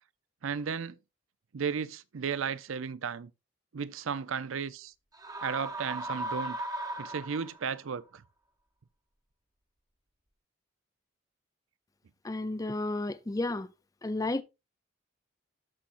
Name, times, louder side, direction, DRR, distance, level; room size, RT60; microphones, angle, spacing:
voice 1, 0.4-1.0 1.5-3.3 3.7-4.9 5.4-6.7 7.0-8.2, right 6 dB, 85° right, 0.5 m, -34 dB
sound 1, 5.1-7.8, right 1 dB, 20° right, 0.8 m, -37 dB
voice 2, 12.2-13.7 14.0-14.4, left 2 dB, 15° left, 0.4 m, -32 dB
13.5 x 5.6 x 2.5 m
head